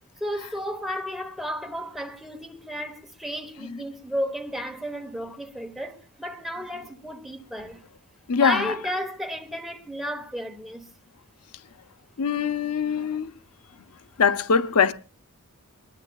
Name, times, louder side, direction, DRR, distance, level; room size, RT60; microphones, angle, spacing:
voice 1, 0.2-7.8 8.3-10.9, equal, ahead, 1.1 m, -33 dB
voice 2, 8.3-8.7 12.2-13.3 14.2-14.9, left 6 dB, 85° left, 0.6 m, -22 dB
22.0 x 20.5 x 2.3 m
head